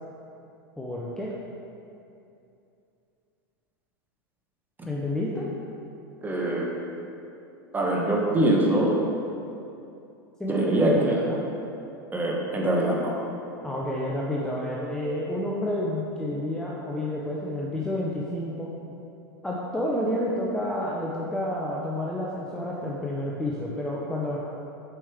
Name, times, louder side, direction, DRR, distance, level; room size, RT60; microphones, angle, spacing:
voice 1, 0.8-1.3 4.9-5.5 10.4-11.5 13.6-18.7 19.4-24.4, left 1 dB, 5° left, -5 dB, 0.8 m, -29 dB
voice 2, 6.2-6.7 7.7-8.9 10.5-11.2 12.1-13.1, right 1 dB, 15° right, -2 dB, 1.2 m, -23 dB
8.6 x 5.3 x 3.5 m, 2.7 s
hypercardioid pair, 115°, 12 cm